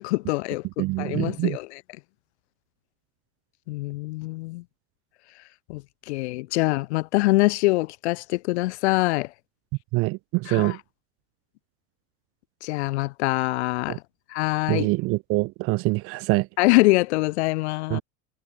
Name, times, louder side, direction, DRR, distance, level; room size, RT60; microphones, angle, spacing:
voice 1, 0.0-1.8 3.7-4.6 5.7-9.3 10.5-10.8 12.6-14.0 14.3-14.9 16.6-18.0, left 21 dB, 90° left, 1.8 m, -24 dB
voice 2, 0.8-1.6 9.9-10.8 13.9-14.0 14.7-16.5 17.9-18.0, right 23 dB, 45° right, 2.6 m, -24 dB
cardioid pair, 180°, 32 cm